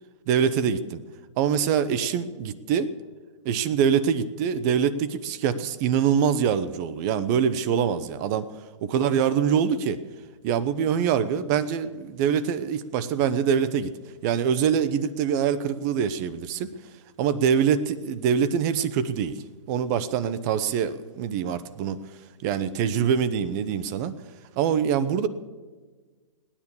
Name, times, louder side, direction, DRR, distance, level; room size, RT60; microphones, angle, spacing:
voice 1, 0.3-1.0 1.4-2.9 3.4-8.5 8.8-10.0 10.4-13.9 14.2-16.7 17.2-19.3 19.7-22.0 22.4-24.1 24.6-25.3, right 7 dB, 35° right, 14 dB, 0.8 m, -24 dB
17.5 x 9.9 x 7.1 m, 1.4 s
figure-of-eight pair, 120°, 17 cm